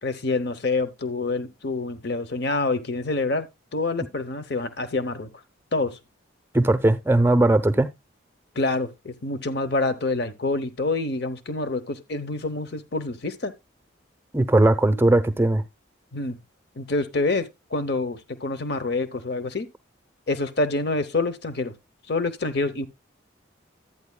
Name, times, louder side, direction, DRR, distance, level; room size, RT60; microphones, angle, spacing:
voice 1, 0.0-5.3 5.7-6.0 8.6-13.5 16.1-16.4 16.8-19.7 20.3-21.7 22.1-22.9, left 3 dB, 55° left, 0.9 m, -27 dB
voice 2, 6.5-7.9 14.3-15.6, right 2 dB, 10° right, 0.6 m, -19 dB
12.0 x 9.2 x 2.2 m
head